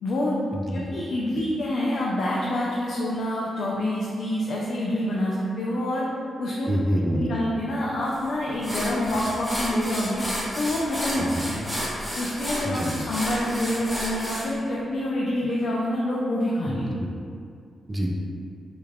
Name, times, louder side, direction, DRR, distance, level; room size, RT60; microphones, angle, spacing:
voice 1, 0.0-6.1 6.4-6.7 7.1-10.2 10.6-11.8 12.1-16.9, left 1 dB, 70° left, -5 dB, 0.3 m, -27 dB
voice 2, 0.5-0.8 6.7-7.3 11.2-11.3 12.6-13.0 16.6-17.1 17.9-18.1, equal, 25° right, -2 dB, 0.4 m, -27 dB
sound 1, 8.1-8.2 8.6-14.5, equal, 10° left, 0.7 m, -31 dB
2.4 x 2.2 x 3.3 m, 2.3 s
cardioid pair, 75°, 0 cm